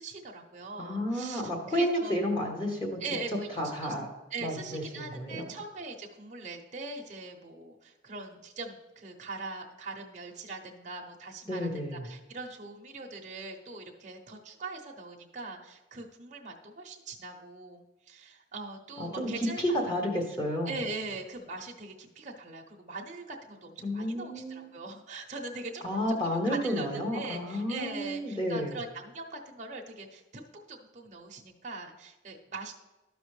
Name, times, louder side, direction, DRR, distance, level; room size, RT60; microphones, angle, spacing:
voice 1, 0.0-2.2 3.0-3.9 4.3-20.0 20.7-32.7, right 3 dB, 35° right, 0 dB, 0.8 m, -41 dB
voice 2, 0.8-3.0 3.6-4.1 4.4-5.5 11.5-12.0 19.0-19.3 19.6-20.7 23.8-24.7 25.8-28.7, equal, 20° left, -1 dB, 1.2 m, -31 dB
13.0 x 5.1 x 3.3 m, 1.1 s
head